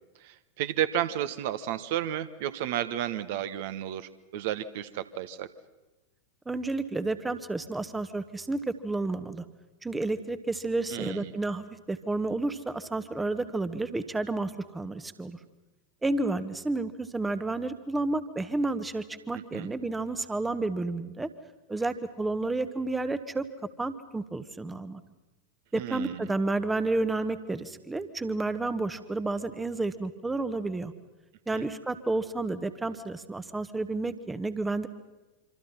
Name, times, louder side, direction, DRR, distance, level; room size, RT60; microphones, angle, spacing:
voice 1, 0.2-5.5 10.9-11.3 19.5-19.7 25.7-26.2 31.5-31.7, right 11 dB, 50° right, 12 dB, 1.2 m, -32 dB
voice 2, 6.5-9.4 9.8-15.4 16.0-21.3 21.7-23.4 23.8-25.0 25.7-30.9 31.5-34.9, right 2 dB, 10° right, 13 dB, 1.3 m, -31 dB
26.5 x 26.0 x 5.7 m, 1.1 s
figure-of-eight pair, 90°, 0 cm